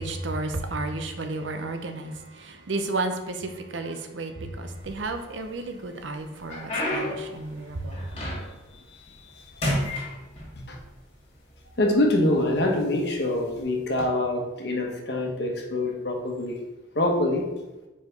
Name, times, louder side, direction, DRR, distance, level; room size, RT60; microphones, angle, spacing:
voice 1, 0.0-8.1, right 2 dB, 75° right, 6 dB, 0.7 m, -32 dB
sound 1, 4.7-5.5 6.0-8.7 9.1-9.4 9.6-10.8 11.7-11.8 12.5-12.7 13.8-14.0, left 1 dB, 30° left, 1.9 m, -31 dB
voice 2, 8.9-9.6 10.5-10.8 11.8-16.6 16.9-17.5, left 1 dB, 55° left, 1 dB, 1.1 m, -25 dB
5.0 x 4.7 x 5.2 m, 1.1 s
head